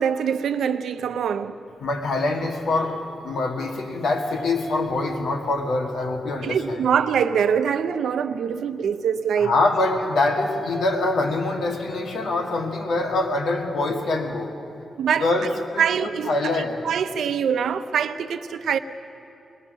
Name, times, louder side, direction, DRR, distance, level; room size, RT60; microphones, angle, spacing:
voice 1, 0.0-1.6 6.4-9.5 15.0-15.3 15.8-18.8, right 7 dB, 85° right, 0.7 m, -24 dB
voice 2, 1.8-6.8 9.4-14.5 15.2-16.8, left 2 dB, 90° left, 2.0 m, -24 dB
21.0 x 19.5 x 6.4 m
wide cardioid pair, 175°, 0 cm